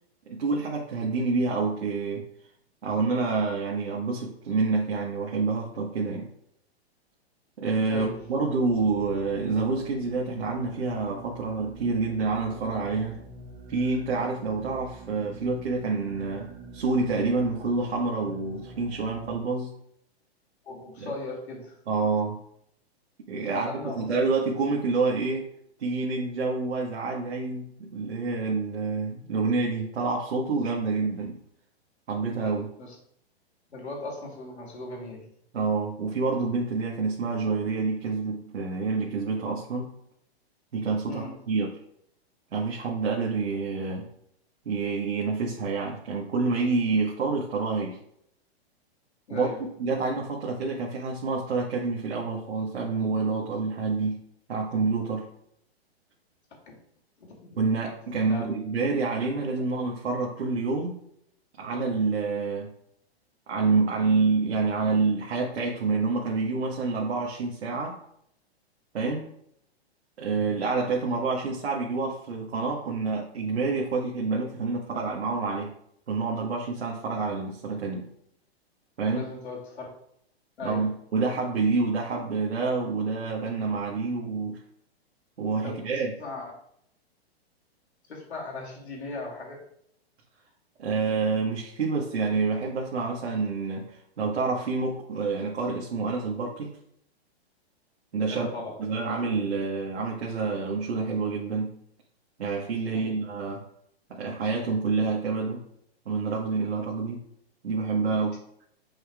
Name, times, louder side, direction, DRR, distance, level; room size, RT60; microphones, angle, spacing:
voice 1, 0.3-2.2 2.8-6.3 7.6-13.2 13.7-19.7 21.0-21.1 21.9-22.4 23.3-25.5 25.8-31.4 32.1-32.7 35.5-39.9 40.7-41.8 42.5-44.1 44.6-48.0 49.3-49.5 49.8-54.2 54.5-55.3 57.5-61.0 61.6-62.7 63.5-68.0 68.9-69.3 70.2-75.7 76.1-78.0 79.0-79.3 80.6-84.6 85.4-86.1 90.8-96.7 98.1-98.5 98.8-101.7 102.4-103.6 104.1-105.6 106.0-107.2 107.6-108.4, right 4 dB, 85° right, -3 dB, 1.4 m, -28 dB
voice 2, 7.9-8.3 20.6-21.8 23.5-24.1 32.8-33.0 33.7-35.3 41.1-41.4 49.3-49.7 56.7-56.8 57.2-57.4 58.2-58.4 79.1-79.9 80.6-81.0 85.6-86.5 88.1-89.7 98.3-98.9 102.9-103.2, left 2 dB, 85° left, -1 dB, 2.5 m, -38 dB
sound 1, 7.9-19.4, right 3 dB, 25° right, 1.5 m, -45 dB
7.7 x 5.5 x 2.4 m, 0.71 s
hypercardioid pair, 130°, 32 cm